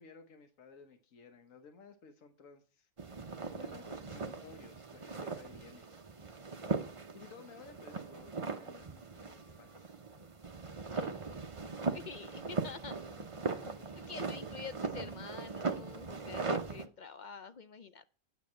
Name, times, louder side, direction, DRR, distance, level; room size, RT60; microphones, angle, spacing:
voice 1, 0.0-2.9 3.5-5.9 7.1-9.9 10.9-11.2 13.6-13.7 14.1-14.2, left 5 dB, 85° left, 6 dB, 1.4 m, -56 dB
sound 1, 3.0-16.9, right 4 dB, 30° right, 0.7 m, -39 dB
voice 2, 11.9-13.0 14.1-18.1, left 5 dB, 55° left, 11 dB, 0.5 m, -47 dB
9.3 x 5.2 x 7.3 m, 0.39 s
omnidirectional pair, 1.3 m